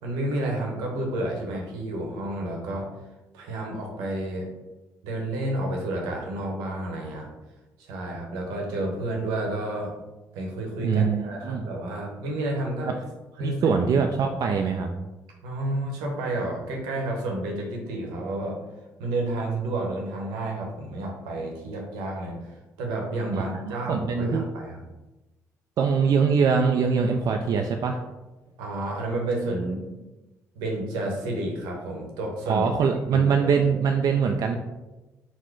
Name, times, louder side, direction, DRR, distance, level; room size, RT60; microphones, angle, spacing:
voice 1, 0.0-2.9 3.3-4.5 5.0-7.3 7.8-9.9 10.3-12.9 13.4-13.7 15.4-18.6 19.0-24.8 28.6-29.8 30.5-32.7 33.1-33.7, right 1 dB, 85° right, 0 dB, 0.9 m, -30 dB
voice 2, 10.8-11.6 12.9-13.0 13.4-14.9 23.3-24.4 25.8-28.0 32.5-34.6, right 6 dB, 60° right, 4 dB, 0.3 m, -23 dB
4.1 x 2.1 x 4.5 m, 1.1 s
supercardioid pair, 55°, 7 cm